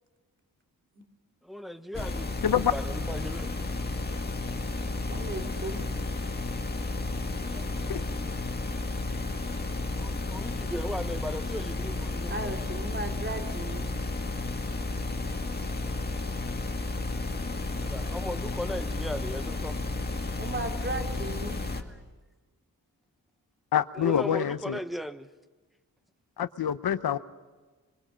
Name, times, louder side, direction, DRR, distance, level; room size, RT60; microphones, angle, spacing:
voice 1, 1.4-2.3 2.7-3.5 4.8-5.2 7.4-8.4 9.9-12.5 15.8-16.2 17.8-19.8 21.7-21.8 23.9-25.3, equal, ahead, 9 dB, 1.1 m, -38 dB
sound 1, 1.9-21.8, left 2 dB, 25° left, 2.1 m, -32 dB
voice 2, 5.1-5.9 12.3-13.9 20.4-21.6, right 2 dB, 30° right, 3 dB, 3.1 m, -36 dB
voice 3, 23.7-24.8 26.4-27.2, left 9 dB, 85° left, 11 dB, 1.0 m, -26 dB
26.0 x 23.0 x 6.4 m, 1.3 s
wide cardioid pair, 120°, 36 cm